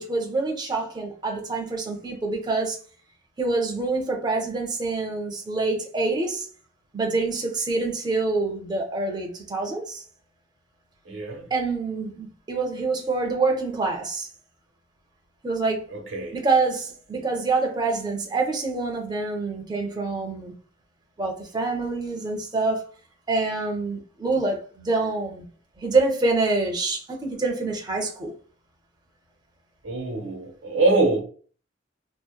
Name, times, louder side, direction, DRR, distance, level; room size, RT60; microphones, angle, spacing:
voice 1, 0.0-2.8 3.4-6.5 6.9-10.0 11.5-14.3 15.4-15.9 16.3-20.5 21.2-22.9 23.3-25.4 25.8-28.3, right 3 dB, 20° right, 0.5 m, -26 dB
voice 2, 11.1-11.5 15.9-16.4 29.8-31.2, right 2 dB, 90° right, 0.7 m, -24 dB
2.7 x 2.0 x 2.3 m
head